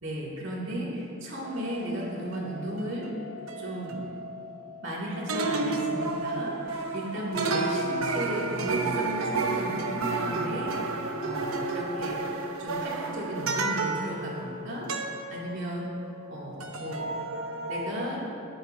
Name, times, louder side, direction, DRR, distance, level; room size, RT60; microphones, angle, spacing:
voice 1, 0.0-3.1 3.6-4.0 4.8-11.0 11.2-12.2 12.6-15.9 16.3-17.1 17.7-18.2, equal, 60° right, -5 dB, 2.7 m, -35 dB
sound 1, 1.4-5.0 5.3-16.3 16.6-18.1, right 3 dB, 80° right, 0.9 m, -32 dB
22.5 x 7.7 x 2.8 m, 2.8 s
head